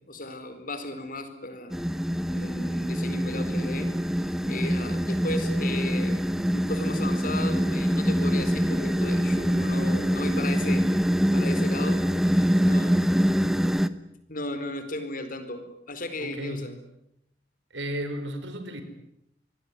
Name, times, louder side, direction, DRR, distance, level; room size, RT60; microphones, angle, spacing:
voice 1, 0.1-1.8 2.3-3.9 4.2-6.2 6.5-13.0 14.3-16.8, left 2 dB, 50° left, 9 dB, 4.4 m, -35 dB
sound 1, 1.7-13.9, equal, ahead, 1.0 m, -24 dB
voice 2, 16.2-16.8 17.7-18.8, equal, 90° right, 9 dB, 5.0 m, -34 dB
26.5 x 20.5 x 9.8 m, 0.80 s
head